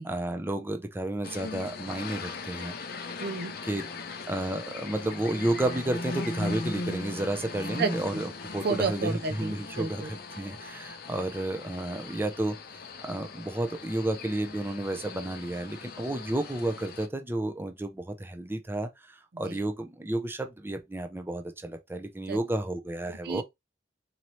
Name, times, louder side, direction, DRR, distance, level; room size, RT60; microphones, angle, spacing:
voice 1, 0.0-2.7 3.6-3.8 4.1-12.6 13.0-23.4, right 1 dB, 10° right, 0.5 m, -32 dB
sound 1, 1.2-17.1, left 3 dB, 60° left, 0.7 m, -39 dB
voice 2, 3.2-3.5 7.8-8.2 8.6-10.1 19.5-19.6 22.3-22.4 23.2-23.4, right 4 dB, 60° right, 0.5 m, -31 dB
4.2 x 2.7 x 3.1 m
head